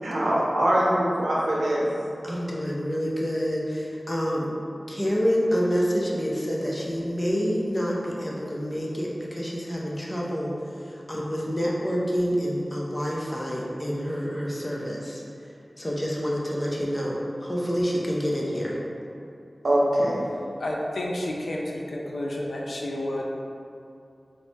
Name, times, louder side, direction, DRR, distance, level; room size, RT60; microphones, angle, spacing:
voice 1, 0.0-1.9 19.6-20.2, right 1 dB, 80° right, -5 dB, 0.7 m, -22 dB
voice 2, 2.2-4.5 4.9-10.5 10.9-15.2 15.8-18.8, equal, 25° left, -4 dB, 0.6 m, -27 dB
voice 3, 20.3-23.2, left 1 dB, 85° left, -2 dB, 0.4 m, -31 dB
4.1 x 2.0 x 3.2 m, 2.5 s
wide cardioid pair, 50°, 0 cm